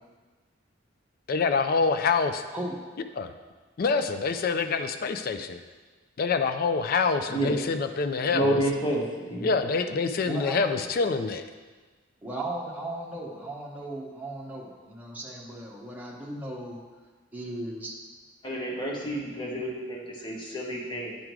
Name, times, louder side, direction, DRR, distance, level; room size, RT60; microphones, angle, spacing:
voice 1, 1.3-2.4 3.2-3.3 3.8-5.6 6.2-8.6 9.4-11.4, left 4 dB, 50° left, 8 dB, 0.4 m, -26 dB
voice 2, 8.3-9.6 18.4-21.2, right 1 dB, 25° left, -3 dB, 1.4 m, -29 dB
voice 3, 10.3-10.9 12.2-16.8 17.3-17.9, right 1 dB, 10° right, -4 dB, 1.1 m, -36 dB
10.5 x 3.7 x 4.6 m, 1.3 s
head